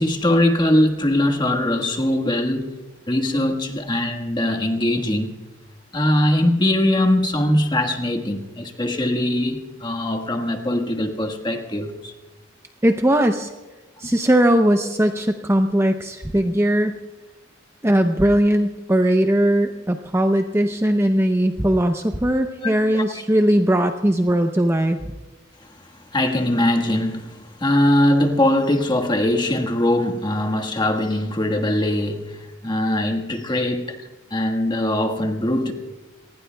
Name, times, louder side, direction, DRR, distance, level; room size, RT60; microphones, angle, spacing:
voice 1, 0.0-2.7 3.1-5.3 5.9-12.1 22.6-23.0 26.1-34.0 34.3-35.7, left 1 dB, 25° left, 1.5 m, -21 dB
voice 2, 12.8-13.5 14.0-17.0 17.8-25.1, right 1 dB, 15° right, 0.6 m, -19 dB
28.0 x 19.5 x 2.3 m
head